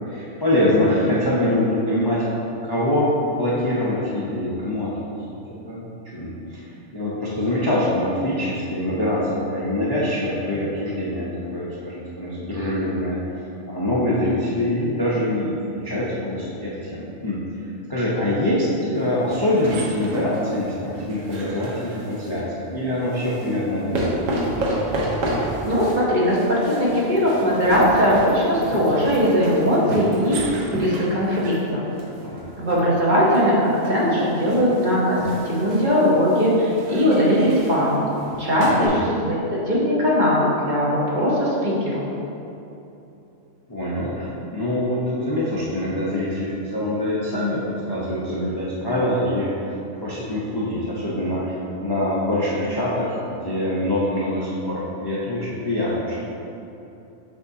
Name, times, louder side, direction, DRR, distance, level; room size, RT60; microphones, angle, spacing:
voice 1, 0.1-2.3 2.6-5.1 5.6-6.6 6.9-13.2 13.7-17.4 17.9-24.3 32.2-32.4 38.7-39.0 43.7-49.5 50.0-56.2, left 1 dB, 25° left, -7 dB, 0.6 m, -24 dB
sound 1, 19.2-22.4 23.1-38.9, right 1 dB, 75° right, 1.3 m, -31 dB
voice 2, 25.4-31.8 32.6-35.2 35.4-38.1 38.4-42.0, equal, 40° right, -6 dB, 1.1 m, -20 dB
7.0 x 5.5 x 2.7 m, 2.9 s
omnidirectional pair, 1.4 m